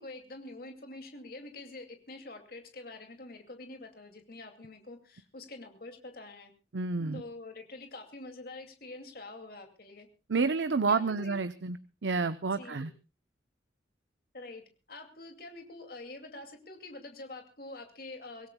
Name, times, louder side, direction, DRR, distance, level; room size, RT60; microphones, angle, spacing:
voice 1, 0.0-6.5 7.1-10.1 10.9-11.4 12.5-12.9 14.3-18.5, left 2 dB, 55° left, 5 dB, 2.5 m, -46 dB
voice 2, 6.7-7.2 10.3-11.8 12.0-12.9, right 4 dB, 90° right, 12 dB, 0.8 m, -29 dB
24.5 x 17.5 x 2.3 m, 0.31 s
head